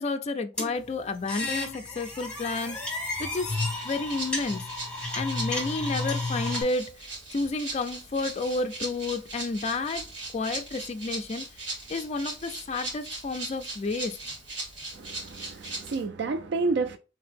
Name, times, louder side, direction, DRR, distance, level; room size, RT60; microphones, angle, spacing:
voice 1, 0.0-2.8 3.2-3.6 3.8-4.7 5.1-10.1 10.3-11.4 11.9-14.2, left 3 dB, 35° left, 0.4 m, -31 dB
sound 1, 0.6-6.6, left 2 dB, 5° left, 1.6 m, -32 dB
Rattle (instrument), 3.5-16.0, right 2 dB, 80° right, 2.1 m, -39 dB
voice 2, 14.9-17.0, right 3 dB, 65° right, 0.3 m, -30 dB
3.3 x 2.8 x 3.4 m
head